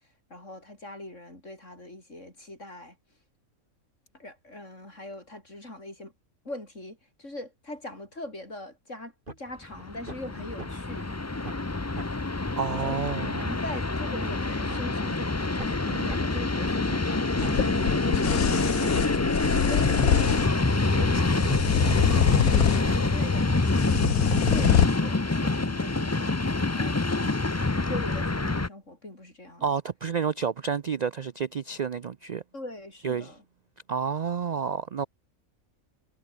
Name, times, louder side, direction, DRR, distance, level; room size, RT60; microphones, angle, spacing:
voice 1, 0.3-3.0 4.1-6.1 6.4-11.1 12.8-19.1 22.9-23.6 24.2-27.3 27.8-29.7 32.5-33.4, left 1 dB, 60° left, 8.4 m, -42 dB
sound 1, 9.3-9.4 9.8-10.2 10.6-10.7 11.1-11.2 11.4-11.7 12.0-12.1 12.5-12.6 12.9-13.0 13.4-13.5 13.9-14.8 15.2-15.3 15.6-15.8 16.1-16.2 16.6-17.5 17.9-18.0 18.3-18.5 18.8-18.9 19.3-19.4 19.7-19.9 20.2-20.3 20.7-21.2 21.5-21.6 22.0-22.1 22.4-22.6 22.9-23.0 23.4-23.5, right 2 dB, 35° right, 4.4 m, -40 dB
Train, 9.7-28.7, left 3 dB, 20° left, 0.5 m, -26 dB
voice 2, 12.6-13.4 29.6-32.4 33.0-33.3 33.9-35.1, right 6 dB, 80° right, 0.3 m, -29 dB
sound 2, 17.4-24.9, left 9 dB, 85° left, 1.4 m, -26 dB
omnidirectional pair, 1.5 m